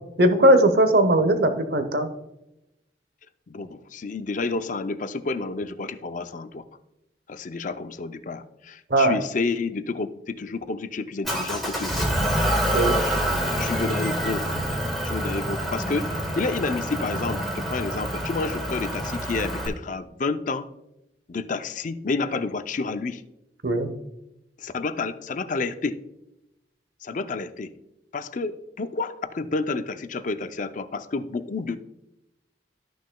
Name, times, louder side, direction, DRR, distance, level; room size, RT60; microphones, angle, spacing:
voice 1, 0.2-2.1 8.9-9.1 12.7-13.0 23.6-23.9, right 1 dB, 60° right, 9 dB, 0.9 m, -19 dB
voice 2, 3.5-6.6 7.3-12.1 12.8-13.1 13.6-14.5 15.0-20.7 21.3-23.2 24.6-26.0 27.0-27.7 28.1-31.8, left 3 dB, 45° left, 10 dB, 0.5 m, -30 dB
Motor vehicle (road) / Engine, 11.2-19.7, equal, ahead, 1.7 m, -27 dB
13.5 x 6.2 x 2.3 m, 0.90 s
head